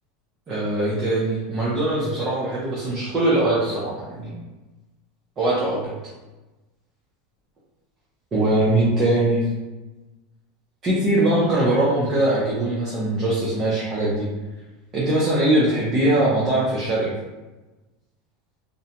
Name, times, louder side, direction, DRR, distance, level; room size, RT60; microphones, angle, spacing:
voice 1, 0.5-4.3 5.4-5.9 8.3-9.4 10.8-14.2 14.9-17.1, right 1 dB, 30° right, -8 dB, 0.6 m, -21 dB
2.5 x 2.1 x 2.8 m, 1.1 s
supercardioid pair, 145°, 0 cm